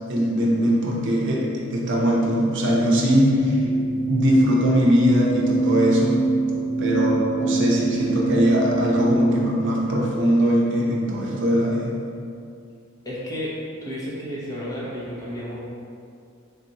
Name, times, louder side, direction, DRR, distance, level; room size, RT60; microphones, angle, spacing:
voice 1, 0.1-3.7 4.1-6.2 6.8-11.9, equal, 55° right, -3 dB, 0.7 m, -21 dB
sound 1, 3.4-9.4, right 3 dB, 85° left, 0.7 m, -24 dB
voice 2, 13.0-13.6 13.8-15.6, equal, 15° left, -7 dB, 0.9 m, -32 dB
4.0 x 3.7 x 2.9 m, 2.4 s
head